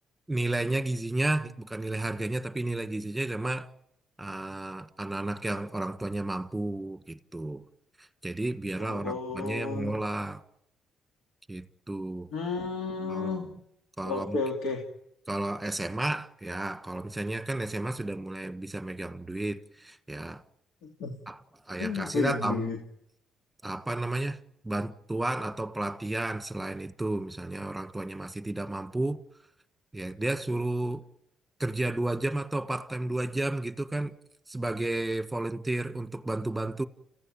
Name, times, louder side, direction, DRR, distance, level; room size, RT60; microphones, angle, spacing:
voice 1, 0.3-3.7 4.2-7.7 8.0-10.4 11.5-12.3 13.1-13.5 14.0-14.4 15.3-20.4 21.3-22.7 23.6-29.2 29.9-31.0 31.6-34.2 34.5-36.8, right 2 dB, 10° right, 1.7 m, -32 dB
voice 2, 8.8-9.9 12.3-13.5 14.0-14.8 20.8-21.1 21.8-22.8, left 4 dB, 90° left, 2.8 m, -32 dB
30.0 x 16.0 x 9.0 m
cardioid pair, 90°, 0 cm